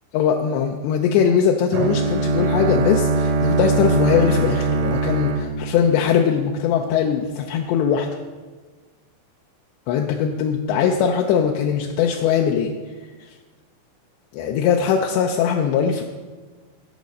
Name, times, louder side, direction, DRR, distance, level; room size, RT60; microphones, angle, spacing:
voice 1, 0.1-8.1 9.9-12.7 14.3-16.0, left 7 dB, 80° left, 2 dB, 2.6 m, -20 dB
Bowed string instrument, 1.7-6.7, right 3 dB, 85° right, 3.2 m, -22 dB
16.5 x 6.6 x 5.2 m, 1.3 s
omnidirectional pair, 5.4 m